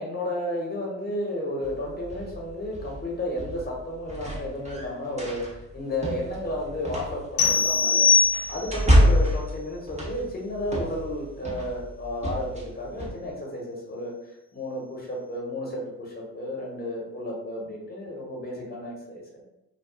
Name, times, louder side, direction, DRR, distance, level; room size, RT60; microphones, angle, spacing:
voice 1, 0.0-5.4 5.7-8.1 8.5-14.1 14.5-19.4, left 1 dB, 20° left, -2 dB, 1.0 m, -32 dB
sound 1, 1.6-13.1, equal, 15° right, 0.6 m, -28 dB
sound 2, 7.4-8.9, left 5 dB, 60° left, 0.6 m, -21 dB
2.3 x 2.3 x 2.4 m, 0.92 s
hypercardioid pair, 55°, 49 cm